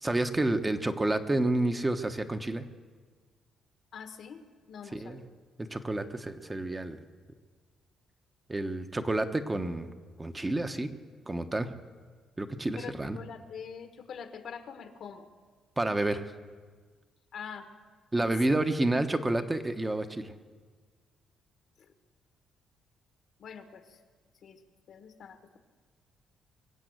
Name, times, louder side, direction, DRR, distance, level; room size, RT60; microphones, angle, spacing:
voice 1, 0.0-2.6 4.9-5.2 5.7-7.0 8.5-9.9 10.2-10.9 11.3-11.7 12.4-13.2 15.8-16.3 18.1-20.3, right 2 dB, 15° right, 8 dB, 1.0 m, -29 dB
voice 2, 3.9-5.3 12.8-15.3 17.3-17.7 18.1-18.3 23.4-24.0 24.4-24.6 24.9-25.6, left 6 dB, 65° left, 8 dB, 1.3 m, -44 dB
23.5 x 7.8 x 7.9 m, 1.5 s
cardioid pair, 95°, 0 cm